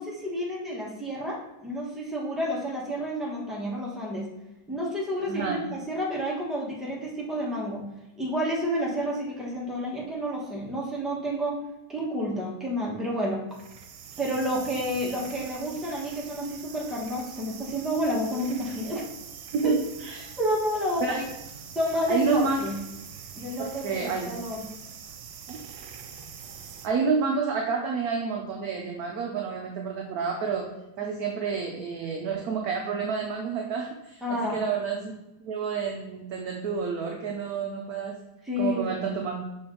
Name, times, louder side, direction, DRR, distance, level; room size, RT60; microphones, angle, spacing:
voice 1, 0.0-4.3 4.7-7.9 8.2-11.6 11.9-13.4 14.2-19.0 19.6-19.7 20.4-21.2 21.7-22.8 23.4-24.7 34.2-34.7 38.5-39.1, equal, ahead, -5 dB, 0.8 m, -30 dB
voice 2, 5.3-5.6 19.5-20.3 21.0-21.2 22.1-22.6 23.6-24.3 25.5-25.6 26.8-30.7 31.0-35.1 35.4-38.2 38.6-39.4, right 5 dB, 65° right, 1 dB, 1.0 m, -29 dB
sound 1, 13.5-26.9, right 7 dB, 80° right, 1.4 m, -43 dB
6.0 x 4.3 x 3.8 m, 0.96 s
omnidirectional pair, 2.2 m